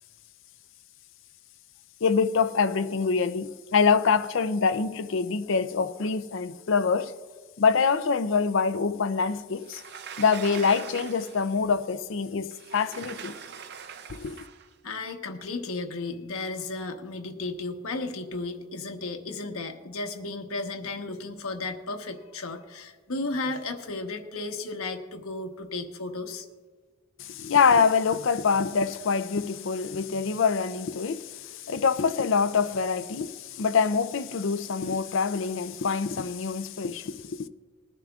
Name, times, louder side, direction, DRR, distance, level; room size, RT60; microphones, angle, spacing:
voice 1, 2.0-7.1 7.6-9.8 10.2-13.4 14.1-14.5 27.2-37.5, left 5 dB, 60° left, 0.5 m, -25 dB
Sliding door, 9.6-11.6 12.5-14.7, right 7 dB, 50° right, 0.5 m, -42 dB
voice 2, 14.8-26.5, left 3 dB, 80° left, 1.1 m, -34 dB
21.0 x 10.5 x 2.4 m
head